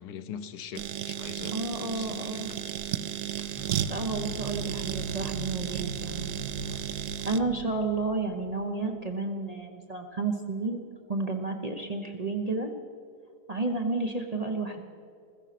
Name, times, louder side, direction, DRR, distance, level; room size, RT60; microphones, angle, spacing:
voice 1, 0.0-2.7, left 7 dB, 75° left, 11 dB, 1.3 m, -43 dB
sound 1, 0.7-7.4, right 10 dB, 70° right, 0.6 m, -34 dB
voice 2, 1.5-2.5 3.4-6.3 7.2-10.8 11.1-12.7 13.5-14.8, right 3 dB, 30° right, 2 dB, 0.8 m, -31 dB
sound 2, 3.6-8.8, right 4 dB, 15° left, 1.4 m, -39 dB
15.5 x 14.0 x 5.9 m, 2.3 s
omnidirectional pair, 1.7 m